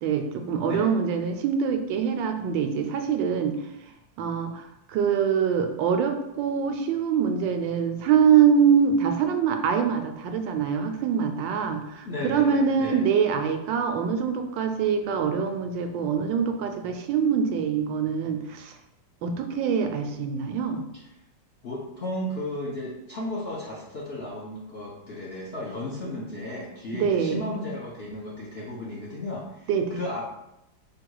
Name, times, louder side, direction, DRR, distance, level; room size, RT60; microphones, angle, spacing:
voice 1, 0.0-3.6 4.2-18.7 19.2-20.8 26.9-27.5 29.7-30.0, right 7 dB, 80° right, 6 dB, 1.3 m, -24 dB
voice 2, 12.0-13.0 21.6-30.2, left 1 dB, 65° left, -4 dB, 0.6 m, -34 dB
5.0 x 2.3 x 4.6 m, 0.87 s
omnidirectional pair, 2.0 m